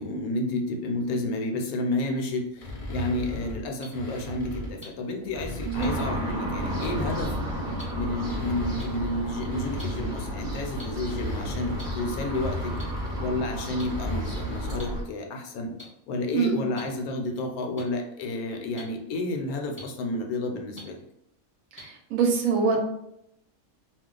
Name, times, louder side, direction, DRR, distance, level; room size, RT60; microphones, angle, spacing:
voice 1, 0.0-7.3 7.9-12.7 13.2-15.7 16.1-21.0, left 2 dB, 75° left, 3 dB, 1.0 m, -31 dB
sound 1, 2.6-4.8 5.2-7.6 8.1-14.8, left 1 dB, 60° left, 0.3 m, -37 dB
sound 2, 3.8-3.9 4.8-4.9 5.8-5.9 6.8-6.9 7.8-7.9 8.8-8.9 9.8-9.9 10.8-10.9 11.8-11.9 12.8-12.9 13.8-13.9 14.8-14.9 15.8-15.9 16.8-16.9 17.8-17.9 18.8-18.9 19.8-19.9 20.8-20.9 21.8-21.9, left 1 dB, 10° left, 0.9 m, -42 dB
sound 3, 5.7-15.0, equal, 45° right, 0.6 m, -32 dB
voice 2, 16.3-16.6 21.7-22.8, right 6 dB, 70° right, 1 dB, 0.9 m, -24 dB
2.4 x 2.2 x 3.7 m, 0.78 s
omnidirectional pair, 1.6 m